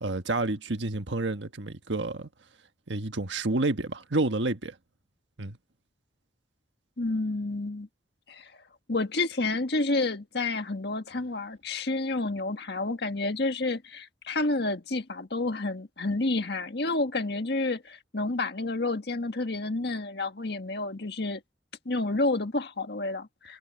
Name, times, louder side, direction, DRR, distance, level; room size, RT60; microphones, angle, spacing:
voice 1, 0.0-2.3 2.9-4.7 5.4-5.6, right 2 dB, 90° right, 1.4 m, -29 dB
voice 2, 7.0-7.9 8.3-8.5 8.9-21.4 21.8-23.6, left 2 dB, 65° left, 1.6 m, -29 dB
head